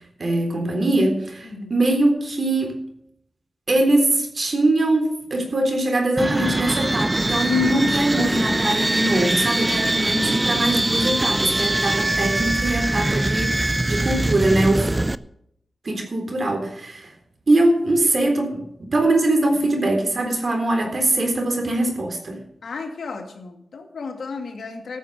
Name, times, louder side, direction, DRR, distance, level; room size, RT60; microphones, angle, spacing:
voice 1, 0.2-2.7 3.7-14.9 15.8-17.1 17.5-22.4, right 1 dB, 55° right, 4 dB, 3.8 m, -22 dB
voice 2, 1.4-1.8 22.6-25.0, left 4 dB, 80° left, 3 dB, 2.4 m, -34 dB
sound 1, 6.2-15.1, right 1 dB, 20° right, 0.5 m, -22 dB
14.0 x 7.2 x 7.9 m, 0.74 s
cardioid pair, 65°, 0 cm